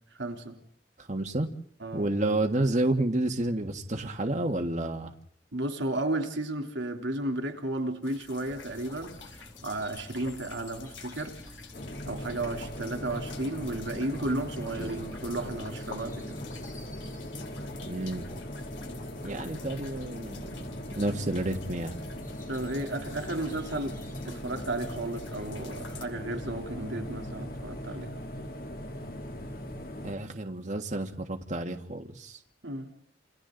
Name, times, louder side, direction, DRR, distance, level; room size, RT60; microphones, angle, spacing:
voice 1, 0.2-0.6 1.8-2.1 5.5-11.4 12.1-16.4 22.5-24.0 24.2-28.2 32.6-32.9, right 2 dB, 80° right, 3.4 m, -33 dB
voice 2, 1.0-1.5 1.9-5.1 14.8-15.0 17.8-18.2 19.2-20.5 20.9-22.0 30.0-32.4, right 1 dB, 40° right, 1.6 m, -30 dB
sound 1, 8.0-26.0, left 6 dB, 85° left, 3.5 m, -50 dB
sound 2, 8.4-28.0, equal, 20° left, 2.5 m, -50 dB
sound 3, 11.7-30.1, equal, 50° left, 3.1 m, -40 dB
29.5 x 28.5 x 4.0 m
head